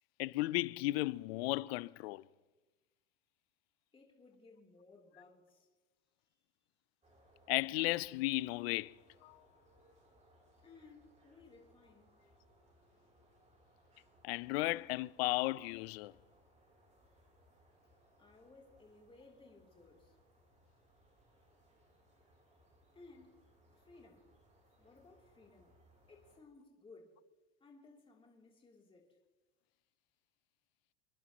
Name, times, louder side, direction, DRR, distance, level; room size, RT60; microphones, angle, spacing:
voice 1, 0.2-2.2 7.5-8.9 9.2-9.4 14.2-16.1, left 20 dB, 65° left, 0.6 m, -35 dB
voice 2, 3.9-5.7 10.6-12.1 18.2-20.2 22.9-23.4 23.7-24.3 24.8-25.7 26.1-27.2 27.6-29.2, left 3 dB, 15° left, 3.2 m, -60 dB
sound 1, 7.0-26.4, equal, 20° right, 3.4 m, -68 dB
28.0 x 11.0 x 3.0 m
supercardioid pair, 115°, 33 cm